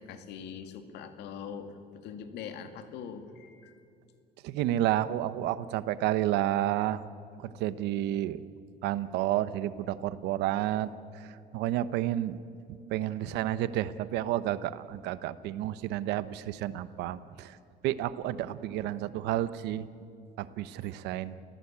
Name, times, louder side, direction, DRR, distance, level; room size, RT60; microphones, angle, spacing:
voice 1, 0.0-3.8, left 7 dB, 85° left, 7 dB, 2.2 m, -42 dB
voice 2, 4.4-7.1 7.4-8.4 8.8-10.9 11.5-12.4 12.9-17.6 17.8-19.9 20.4-21.3, right 13 dB, 90° right, 14 dB, 0.9 m, -30 dB
29.5 x 16.5 x 8.6 m, 2.4 s
cardioid pair, 110°, 17 cm